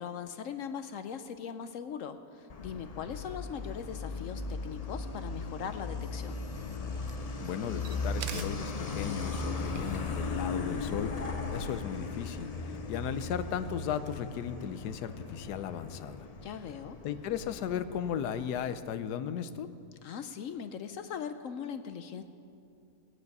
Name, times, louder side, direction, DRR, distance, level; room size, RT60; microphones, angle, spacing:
voice 1, 0.0-6.5 16.4-17.0 20.0-22.2, left 7 dB, 65° left, 9 dB, 0.9 m, -40 dB
Truck, 2.5-18.7, left 3 dB, 50° left, 0.4 m, -37 dB
sound 1, 6.0-11.1, right 11 dB, 75° right, 1.1 m, -50 dB
voice 2, 7.4-11.2 11.5-16.3 17.0-19.7, left 8 dB, 85° left, 11 dB, 1.2 m, -36 dB
18.0 x 9.7 x 5.4 m, 2.5 s
omnidirectional pair, 1.7 m